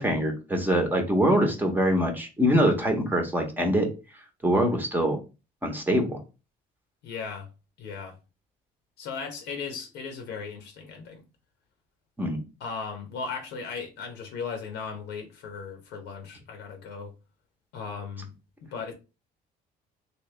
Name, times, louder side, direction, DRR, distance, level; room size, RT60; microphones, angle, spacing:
voice 1, 0.0-3.9 4.4-5.2 5.6-6.2 12.2-12.4, equal, 10° right, 0.9 m, -24 dB
voice 2, 7.0-7.5 7.8-8.2 9.0-11.2 12.6-17.1 17.7-18.3 18.6-18.9, left 5 dB, 85° left, 0.9 m, -37 dB
3.1 x 2.8 x 3.2 m
cardioid pair, 110°, 17 cm